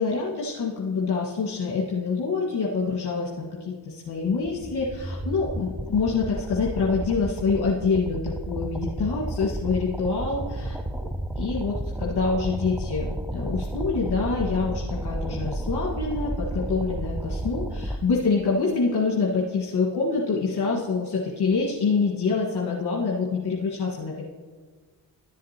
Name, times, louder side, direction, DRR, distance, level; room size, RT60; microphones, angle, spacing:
voice 1, 0.0-10.7 11.4-24.2, left 4 dB, 55° left, -5 dB, 1.6 m, -26 dB
sound 1, 4.2-18.0, right 1 dB, 5° right, 0.4 m, -32 dB
13.5 x 7.5 x 2.9 m, 1.5 s
cardioid pair, 65°, 46 cm